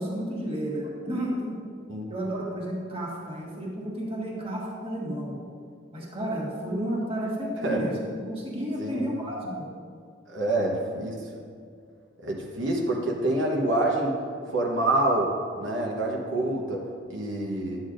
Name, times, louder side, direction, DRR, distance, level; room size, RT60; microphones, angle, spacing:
voice 1, 0.0-1.6 2.1-5.4 5.9-7.9 8.3-9.5, right 1 dB, 30° right, -4 dB, 1.6 m, -31 dB
voice 2, 10.3-11.3 12.2-14.2 14.5-17.9, right 1 dB, 80° right, -1 dB, 1.1 m, -27 dB
11.5 x 8.5 x 2.6 m, 2.2 s
head